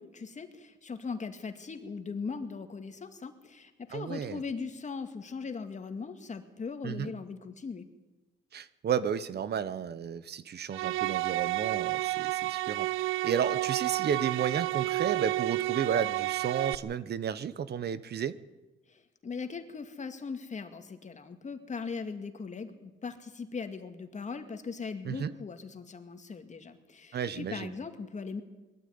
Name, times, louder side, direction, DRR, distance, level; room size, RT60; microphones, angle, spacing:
voice 1, 0.0-7.9 18.9-28.4, left 5 dB, 35° left, 7 dB, 2.3 m, -39 dB
voice 2, 3.9-4.4 6.8-7.1 8.5-12.9 13.2-18.4 25.0-25.3 27.1-27.7, right 8 dB, 55° right, 16 dB, 1.2 m, -32 dB
sound 1, 10.7-16.8, right 18 dB, 90° right, 0.6 m, -30 dB
21.0 x 13.5 x 9.6 m, 1.1 s
cardioid pair, 90°, 20 cm